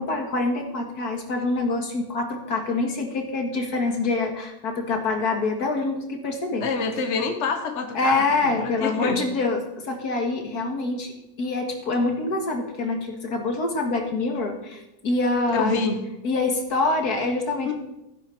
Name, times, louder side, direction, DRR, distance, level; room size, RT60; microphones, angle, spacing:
voice 1, 0.0-6.6 7.9-11.1 11.4-15.8 16.2-17.7, left 3 dB, 80° left, 3 dB, 2.3 m, -25 dB
voice 2, 6.6-9.2 15.5-16.0 17.7-17.8, left 4 dB, 50° left, 5 dB, 1.5 m, -27 dB
14.5 x 11.0 x 4.5 m, 0.93 s
omnidirectional pair, 1.6 m